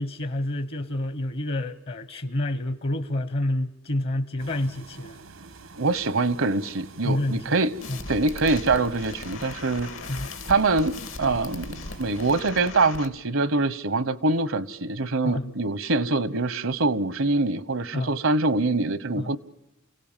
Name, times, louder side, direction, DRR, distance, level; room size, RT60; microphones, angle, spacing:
voice 1, 0.0-5.2 7.0-7.4 7.9-8.0 10.1-10.3 15.2-15.5 17.9-18.1 19.2-19.3, left 1 dB, 50° left, 1.0 m, -28 dB
sound 1, 4.4-12.4, right 3 dB, 90° right, 1.5 m, -47 dB
voice 2, 5.8-7.7 8.1-9.9 10.5-19.4, right 3 dB, 70° right, 1.0 m, -24 dB
sound 2, 7.8-13.1, left 3 dB, 75° left, 1.7 m, -38 dB
29.5 x 17.0 x 7.3 m
head